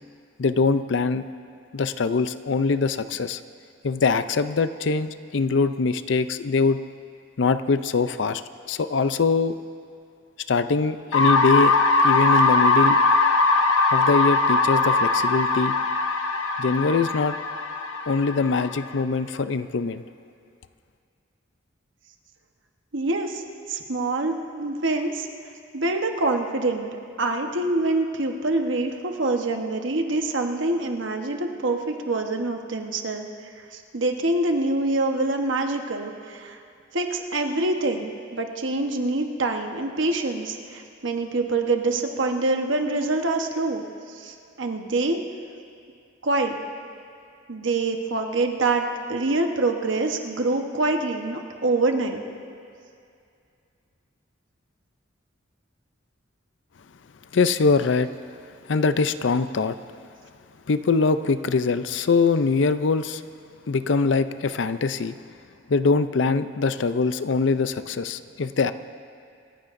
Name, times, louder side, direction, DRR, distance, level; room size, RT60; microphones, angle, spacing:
voice 1, 0.4-1.2 1.7-3.4 3.8-6.8 7.4-8.4 8.7-9.5 10.5-11.7 12.0-13.0 13.9-15.8 16.6-17.4 18.1-20.0 57.3-58.1 58.7-59.8 60.7-63.2 63.7-65.2 65.7-68.7, left 4 dB, 65° left, 12 dB, 0.5 m, -23 dB
sound 1, 11.1-19.0, left 3 dB, 80° left, 1.1 m, -21 dB
voice 2, 22.9-23.4 23.7-25.3 25.7-26.9 27.2-33.3 33.7-36.6 36.9-45.2 46.2-46.6 47.5-52.2, right 2 dB, 70° right, 4 dB, 1.1 m, -25 dB
27.5 x 15.0 x 2.6 m, 2.4 s
head